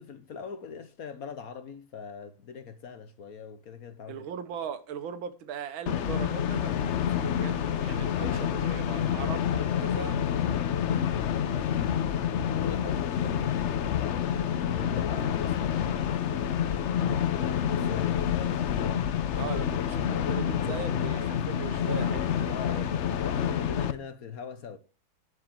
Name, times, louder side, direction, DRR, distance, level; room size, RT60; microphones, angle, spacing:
voice 1, 0.0-4.3 11.9-13.9 14.2-18.6 22.5-22.8 23.2-24.8, left 6 dB, 55° left, 1.1 m, -42 dB
voice 2, 4.1-10.2 19.4-22.9, right 7 dB, 85° right, 1.8 m, -39 dB
sound 1, 5.9-23.9, left 9 dB, 85° left, 0.6 m, -28 dB
11.0 x 5.0 x 7.5 m
omnidirectional pair, 2.1 m